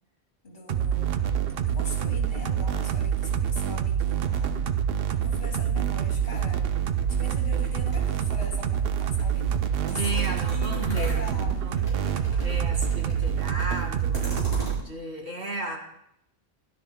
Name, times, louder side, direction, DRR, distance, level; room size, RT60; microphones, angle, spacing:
voice 1, 0.4-1.2 1.6-4.6 5.1-6.9 7.2-9.5 9.9-11.9, left 3 dB, 60° left, 0 dB, 2.8 m, -41 dB
sound 1, 0.7-14.8, right 8 dB, 70° right, 0.8 m, -26 dB
sound 2, 6.3-14.7, equal, 30° right, 5.3 m, -41 dB
sound 3, 7.3-7.7 8.2-8.9 9.5-11.9 12.6-13.4, equal, 75° left, 1.9 m, -47 dB
voice 2, 9.9-14.3 14.8-15.8, right 1 dB, 85° right, 0 dB, 2.5 m, -35 dB
16.0 x 12.0 x 2.3 m, 0.78 s
omnidirectional pair, 1.1 m